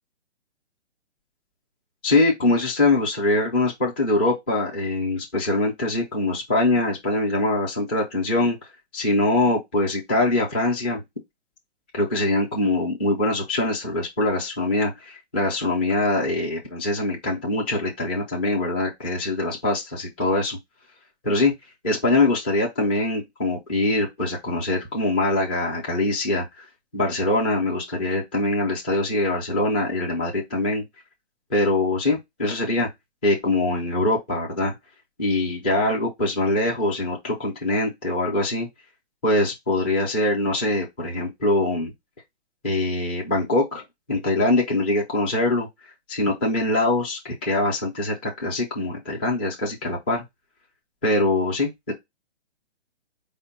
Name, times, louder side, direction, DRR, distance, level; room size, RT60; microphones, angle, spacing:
voice 1, 2.0-8.6 8.9-11.0 11.9-20.6 21.2-21.5 21.8-26.6 26.9-30.8 31.5-32.9 33.2-34.7 35.2-38.7 39.2-41.9 42.6-43.8 44.1-45.7 46.1-50.2 51.0-51.9, left 2 dB, 10° left, 0.4 m, -23 dB
4.8 x 2.1 x 4.2 m
hypercardioid pair, 155°, 34 cm